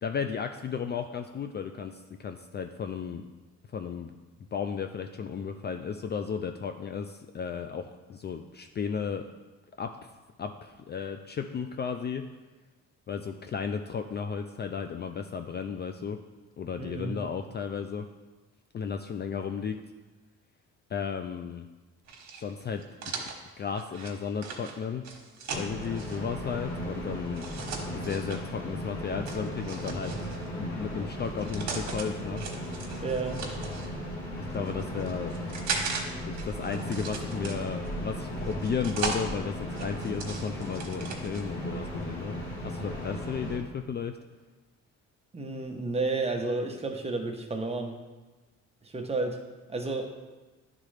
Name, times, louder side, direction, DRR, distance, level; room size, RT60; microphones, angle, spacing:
voice 1, 0.0-3.3 3.7-4.1 4.5-9.3 9.8-10.0 10.4-12.2 13.1-16.2 16.6-18.1 18.7-19.8 20.9-21.7 22.4-22.8 23.2-23.3 23.6-25.1 25.6-27.5 27.9-30.2 30.6-32.4 34.5-35.3 36.3-42.4 42.6-44.2, left 6 dB, 35° left, 7 dB, 0.4 m, -34 dB
voice 2, 16.8-17.2 33.0-33.4 45.3-48.0 48.8-49.4 49.7-50.1, right 3 dB, 20° right, 3 dB, 0.9 m, -31 dB
sound 1, 22.1-26.2 27.3-28.4 29.3-30.5 31.2-32.1 32.4-33.9 34.5-36.0 36.3-37.9 38.4-39.2 39.7-41.4, right 5 dB, 65° right, 1.3 m, -38 dB
sound 2, 25.5-43.6, equal, 75° left, 1.6 m, -36 dB
10.5 x 3.7 x 3.3 m, 1.2 s
cardioid pair, 90°, 30 cm